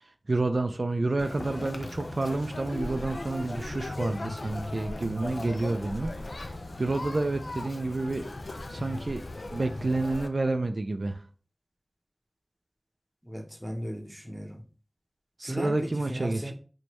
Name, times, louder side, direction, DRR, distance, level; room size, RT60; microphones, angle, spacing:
voice 1, 0.3-6.5 6.8-8.3 8.7-9.2 9.5-11.2 15.4-16.5, right 2 dB, 75° right, 0.3 m, -29 dB
Conversation, 1.2-10.3, left 2 dB, 85° left, 0.3 m, -37 dB
voice 2, 13.2-14.6 15.4-16.5, equal, 5° right, 0.7 m, -36 dB
4.3 x 2.2 x 3.0 m
wide cardioid pair, 50°, 0 cm